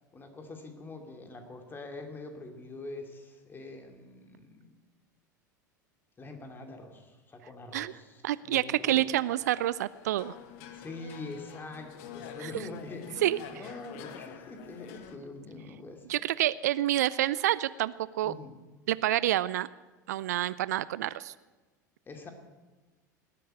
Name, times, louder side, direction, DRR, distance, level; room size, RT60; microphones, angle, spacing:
voice 1, 0.1-4.7 6.2-9.1 10.7-13.2 13.5-16.2 18.2-18.6 22.1-22.3, left 3 dB, 20° left, 5 dB, 2.6 m, -44 dB
voice 2, 8.2-10.3 12.4-12.5 13.2-13.4 16.1-18.3 18.9-19.7 20.1-21.3, right 13 dB, 60° right, 18 dB, 0.4 m, -28 dB
sound 1, 9.3-15.2, left 9 dB, 55° left, 1.2 m, -47 dB
19.0 x 8.5 x 9.0 m, 1.2 s
figure-of-eight pair, 75°, 10 cm